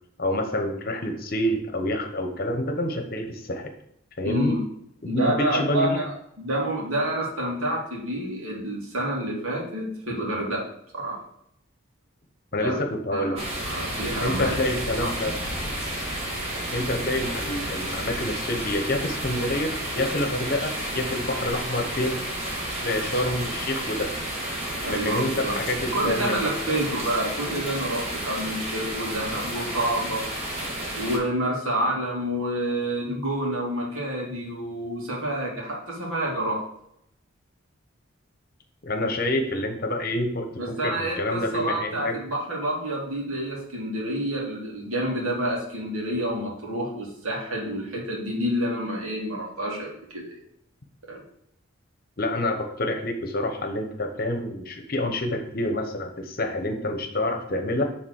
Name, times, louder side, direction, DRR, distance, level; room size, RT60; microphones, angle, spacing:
voice 1, 0.2-3.7 4.2-4.5 5.0-6.0 12.5-13.4 14.2-15.3 16.7-22.2 22.8-24.1 24.9-26.8 38.8-40.5 40.8-42.1 52.2-57.8, left 1 dB, 45° left, 5 dB, 1.0 m, -27 dB
voice 2, 4.2-4.6 5.0-10.6 10.9-11.2 12.6-12.8 13.1-14.5 15.0-15.1 24.7-25.6 25.9-30.2 30.9-36.6 40.6-50.4 51.1-51.2, right 1 dB, 85° right, -2 dB, 2.4 m, -28 dB
sound 1, 13.4-31.2, right 1 dB, 30° right, 1.7 m, -31 dB
6.5 x 4.0 x 6.4 m, 0.73 s
head